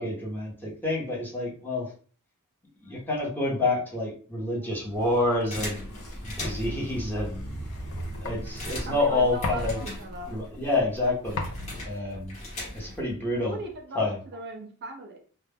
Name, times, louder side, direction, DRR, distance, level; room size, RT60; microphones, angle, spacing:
voice 1, 0.0-1.9 2.8-5.9 6.2-7.4 8.2-9.8 10.3-11.4 11.8-12.4 12.7-13.6 13.9-14.2, left 2 dB, 10° left, -4 dB, 0.7 m, -28 dB
sound 1, 4.9-11.5, right 1 dB, 80° left, 0.9 m, -40 dB
sound 2, 4.9-13.8, left 2 dB, 55° left, 0.4 m, -40 dB
sound 3, 5.5-6.9 7.5-7.6 7.8-10.5 10.7-13.1, left 1 dB, 30° left, 1.0 m, -39 dB
voice 2, 8.9-10.3 13.4-15.2, right 1 dB, 50° right, 3 dB, 0.5 m, -39 dB
2.1 x 2.1 x 3.4 m, 0.42 s
head